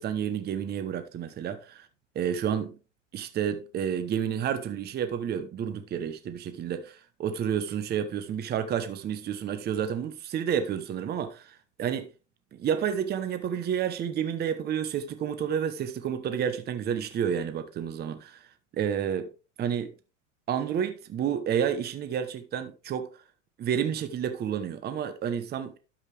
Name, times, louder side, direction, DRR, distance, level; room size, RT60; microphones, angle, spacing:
voice 1, 0.0-1.9 2.1-2.7 3.1-12.1 12.6-18.4 18.7-19.3 19.6-19.9 20.5-23.1 23.6-25.8, right 8 dB, 25° right, 1.0 m, -30 dB
12.0 x 5.5 x 3.3 m
supercardioid pair, 120°, 38 cm